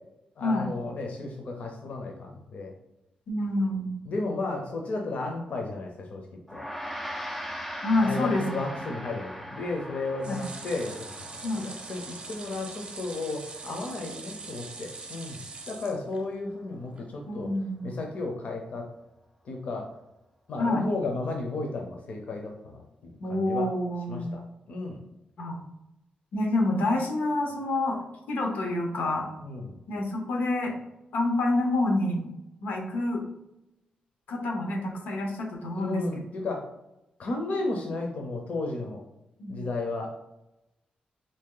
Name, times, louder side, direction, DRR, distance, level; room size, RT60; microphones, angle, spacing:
voice 1, 0.4-2.7 4.1-6.2 6.5-6.6 8.0-17.5 17.8-18.8 19.5-19.9 20.5-23.7 24.1-24.4 24.7-25.0 29.4-29.8 35.7-36.6 37.2-39.0 39.5-40.1, left 3 dB, 55° left, 1 dB, 0.6 m, -34 dB
voice 2, 3.3-3.9 7.8-8.6 10.2-10.4 11.4-11.7 17.3-17.9 20.6-20.9 23.2-24.3 25.4-25.6 26.3-28.0 28.3-29.3 29.9-30.7 31.1-32.3 32.6-33.3 34.3-36.0 39.4-39.6, left 2 dB, 85° left, 1 dB, 0.7 m, -27 dB
Gong, 6.5-16.0, equal, 5° left, 0.4 m, -41 dB
sound 1, 10.2-16.5 16.9-17.0 17.3-17.4, right 4 dB, 35° right, 0.6 m, -43 dB
3.0 x 2.7 x 3.7 m, 0.89 s
wide cardioid pair, 160°, 3 cm